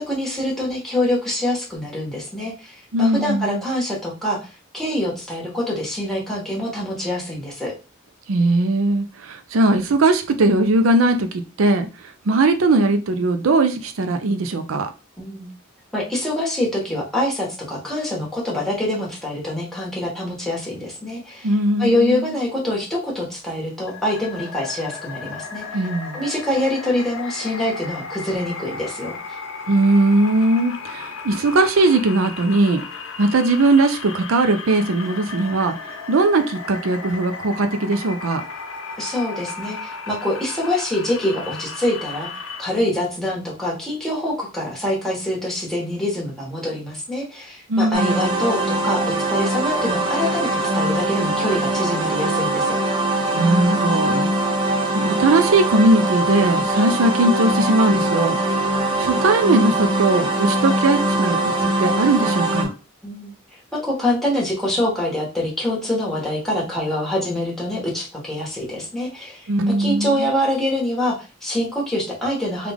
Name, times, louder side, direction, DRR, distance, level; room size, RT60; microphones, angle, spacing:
voice 1, 0.0-4.5 4.7-7.7 15.2-15.5 15.9-21.5 21.8-25.8 26.1-29.2 39.0-42.3 42.6-49.0 49.3-52.8 63.0-63.3 63.7-72.7, left 1 dB, ahead, -5 dB, 1.3 m, -25 dB
voice 2, 2.9-3.6 8.3-14.9 21.4-22.2 25.7-26.2 29.7-32.8 33.2-38.4 47.7-48.4 53.3-54.3 54.9-58.4 58.7-62.7 69.5-70.3, right 2 dB, 85° right, 7 dB, 0.5 m, -19 dB
sound 1, 23.9-42.6, left 4 dB, 80° left, 0.7 m, -35 dB
sound 2, 47.9-62.6, right 1 dB, 25° right, 0.9 m, -22 dB
3.5 x 2.4 x 3.4 m, 0.31 s
head